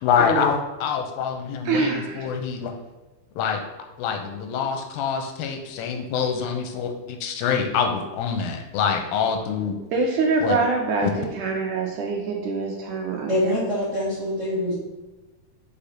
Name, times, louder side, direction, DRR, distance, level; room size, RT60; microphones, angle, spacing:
voice 1, 0.0-2.7 3.4-3.6 4.0-9.8 10.4-10.6 11.0-11.1, left 6 dB, 85° left, 5 dB, 2.6 m, -25 dB
voice 2, 1.7-2.3 9.9-11.1 11.4-13.3, right 4 dB, 75° right, 1 dB, 2.0 m, -24 dB
voice 3, 13.3-14.7, equal, 40° right, -8 dB, 1.1 m, -24 dB
5.3 x 4.9 x 5.7 m, 1.1 s
omnidirectional pair, 4.1 m